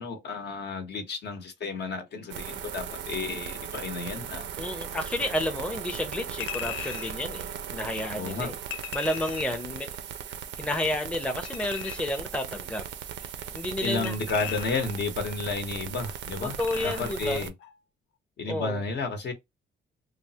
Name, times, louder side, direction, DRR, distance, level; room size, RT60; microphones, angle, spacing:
voice 1, 0.0-4.5 8.1-8.5 13.8-16.6 16.8-17.5 18.4-19.3, left 4 dB, 60° left, 0.9 m, -32 dB
sound 1, 2.3-17.5, right 8 dB, 65° right, 0.5 m, -38 dB
voice 2, 4.6-8.6 8.9-9.9 10.6-12.8 13.5-14.2 16.4-17.5 18.5-18.8, left 1 dB, 5° left, 0.6 m, -31 dB
Chink clink, 6.4-7.2 8.7-9.6 11.5-12.2 14.0-15.0 16.6-17.2 17.6-17.7, left 11 dB, 80° left, 0.4 m, -38 dB
3.2 x 2.0 x 2.7 m
cardioid pair, 90°, 20 cm